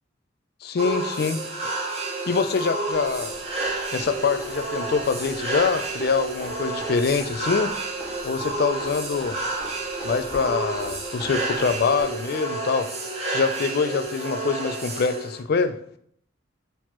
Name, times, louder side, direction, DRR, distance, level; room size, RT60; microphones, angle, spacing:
voice 1, 0.6-1.4 2.3-3.3 3.9-7.7 8.2-9.4 10.0-12.9 13.3-15.8, left 5 dB, 55° left, 10 dB, 0.3 m, -24 dB
sound 1, 0.8-15.4, right 2 dB, 35° right, 0.7 m, -30 dB
sound 2, 2.9-12.0 14.0-14.1, equal, 10° right, 1.8 m, -44 dB
6.0 x 3.0 x 2.9 m, 0.66 s
head